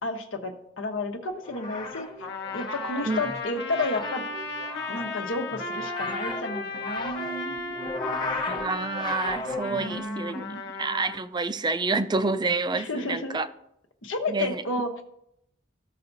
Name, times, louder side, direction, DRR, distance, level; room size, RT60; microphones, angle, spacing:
voice 1, 0.0-2.1 2.5-4.3 4.9-7.7 9.7-10.6 12.7-13.4 14.0-15.0, left 2 dB, 85° left, 5 dB, 1.1 m, -32 dB
sound 1, 1.3-10.0, left 2 dB, 25° left, 1.1 m, -36 dB
Trumpet, 2.2-11.2, left 3 dB, 60° left, 1.0 m, -35 dB
voice 2, 8.5-10.5 10.8-13.5 14.3-14.6, right 3 dB, 20° right, 11 dB, 0.4 m, -28 dB
15.0 x 5.8 x 2.7 m, 0.76 s
head